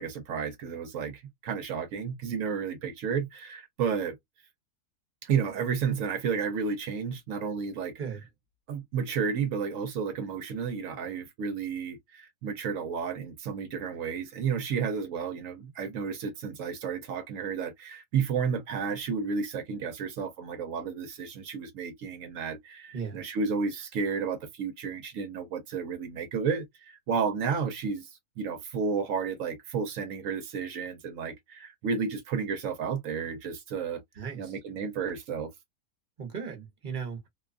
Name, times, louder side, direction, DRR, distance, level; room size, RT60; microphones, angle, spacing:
voice 1, 0.0-4.2 5.2-7.9 8.7-28.1 28.4-34.0 34.4-35.5, right 6 dB, 65° right, 1.0 m, -32 dB
voice 2, 34.1-34.5 36.2-37.3, right 6 dB, 40° right, 0.9 m, -36 dB
2.7 x 2.2 x 2.3 m
omnidirectional pair, 1.5 m